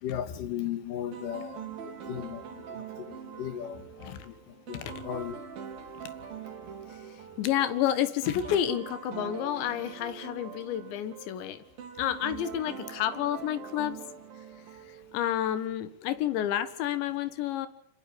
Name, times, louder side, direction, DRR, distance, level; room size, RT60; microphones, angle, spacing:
voice 1, 0.0-4.4 4.7-5.4, left 10 dB, 60° left, 2.6 m, -37 dB
sound 1, 1.1-15.3, right 7 dB, 60° right, 4.0 m, -43 dB
voice 2, 6.9-11.6 12.0-14.0 14.9-17.7, left 10 dB, 90° left, 3.7 m, -30 dB
26.0 x 19.0 x 8.6 m
omnidirectional pair, 5.0 m